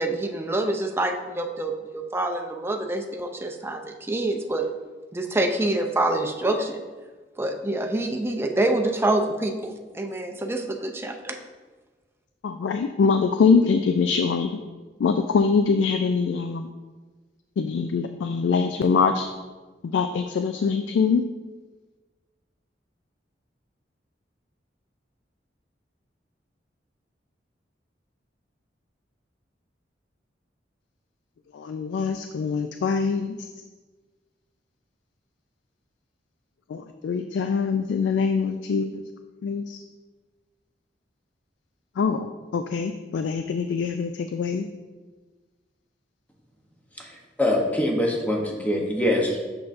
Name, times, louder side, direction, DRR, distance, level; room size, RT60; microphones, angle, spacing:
voice 1, 0.0-4.7 5.1-6.8 7.4-11.4, right 2 dB, 15° right, 4 dB, 0.4 m, -26 dB
voice 2, 12.4-14.6 15.0-16.7 17.6-19.3 19.9-21.2 31.5-33.5 36.7-39.0 39.4-39.8 42.0-44.7, left 5 dB, 80° left, 7 dB, 0.3 m, -23 dB
voice 3, 47.0-49.5, left 1 dB, 10° left, -1 dB, 0.8 m, -24 dB
6.6 x 5.8 x 2.5 m, 1.3 s
head